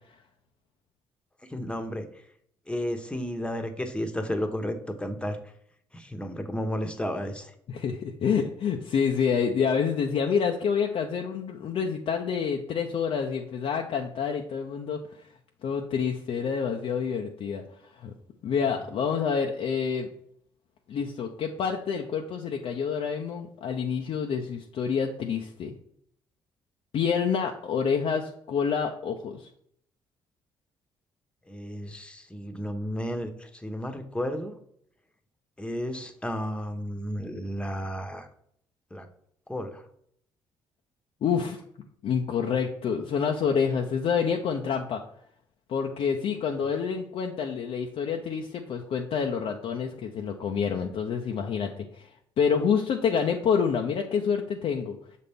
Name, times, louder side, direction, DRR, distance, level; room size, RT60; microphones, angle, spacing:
voice 1, 1.5-2.0 2.7-5.4 5.9-7.5 31.5-34.6 35.6-38.3 38.9-39.1 39.5-39.8, equal, 10° left, 7 dB, 1.0 m, -32 dB
voice 2, 7.7-15.0 15.6-17.6 17.9-18.1 18.4-20.1 20.9-25.7 26.9-29.5 41.2-41.6 42.0-45.0 45.7-52.1 52.4-55.0, left 6 dB, 60° left, 2 dB, 0.6 m, -27 dB
6.4 x 4.2 x 3.5 m, 0.68 s
hypercardioid pair, 55°, 11 cm